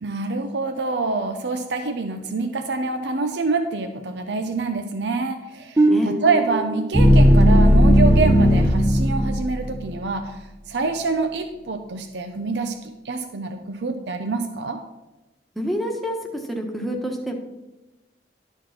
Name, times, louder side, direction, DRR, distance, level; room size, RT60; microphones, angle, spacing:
voice 1, 0.0-10.4 10.7-14.8, right 3 dB, 80° right, 6 dB, 0.7 m, -26 dB
sound 1, 5.8-9.8, equal, 15° right, 0.8 m, -16 dB
voice 2, 15.5-16.2 16.5-17.3, equal, ahead, 1 dB, 1.2 m, -27 dB
11.5 x 4.5 x 5.9 m, 1.0 s
head